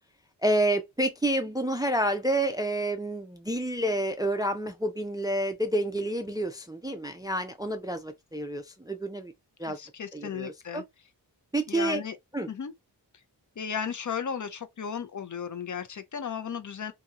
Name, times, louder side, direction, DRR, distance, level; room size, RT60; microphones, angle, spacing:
voice 1, 0.4-9.3 9.6-9.8 10.1-10.8 11.5-12.0 12.3-12.5, right 1 dB, 10° right, 0.3 m, -29 dB
voice 2, 9.6-10.8 11.7-12.2 12.5-12.7 13.6-16.9, left 7 dB, 45° left, 0.5 m, -35 dB
2.7 x 2.7 x 2.4 m
cardioid pair, 55°, 43 cm